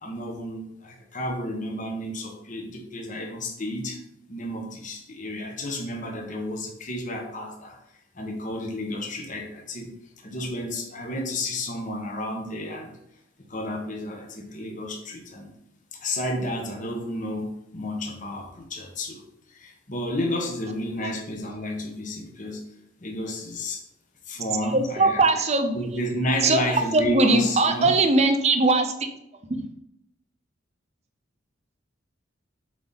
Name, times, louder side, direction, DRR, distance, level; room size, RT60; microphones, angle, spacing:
voice 1, 0.0-4.0 4.3-7.8 8.1-9.9 10.2-12.9 13.5-15.5 15.9-19.2 19.5-22.6 23.0-23.8 24.3-25.2 25.7-28.0, left 1 dB, 40° left, 1 dB, 1.3 m, -31 dB
voice 2, 24.6-25.8 26.4-26.6 26.9-29.1, right 3 dB, 35° right, 6 dB, 0.8 m, -20 dB
8.0 x 4.1 x 4.1 m, 0.82 s
head